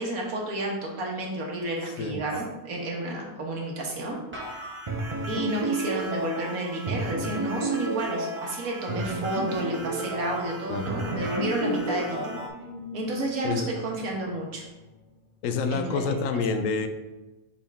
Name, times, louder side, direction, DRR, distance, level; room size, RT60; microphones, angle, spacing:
voice 1, 0.0-4.2 5.3-12.3 12.9-14.6 15.7-16.4, right 1 dB, 75° right, -1 dB, 1.7 m, -31 dB
sound 1, 4.3-6.4 11.2-14.4, right 1 dB, 10° right, 1.2 m, -47 dB
sound 2, 4.4-12.5, right 2 dB, 30° right, 0.5 m, -31 dB
sound 3, 9.3-15.4, left 1 dB, 50° left, 2.0 m, -45 dB
voice 2, 15.4-16.9, left 4 dB, 70° left, 7 dB, 1.0 m, -27 dB
5.3 x 5.2 x 3.5 m, 1.1 s
omnidirectional pair, 1.5 m